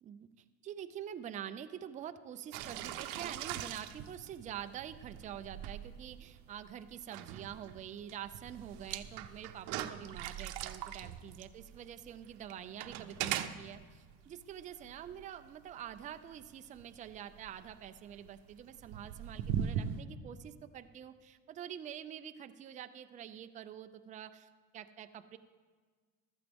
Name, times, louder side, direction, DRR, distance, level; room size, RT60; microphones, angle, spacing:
voice 1, 0.0-25.4, right 9 dB, 20° right, 9 dB, 0.3 m, -46 dB
sound 1, 2.5-20.0, right 10 dB, 80° right, 0.7 m, -41 dB
15.0 x 13.0 x 3.5 m, 1.5 s
cardioid pair, 160°, 37 cm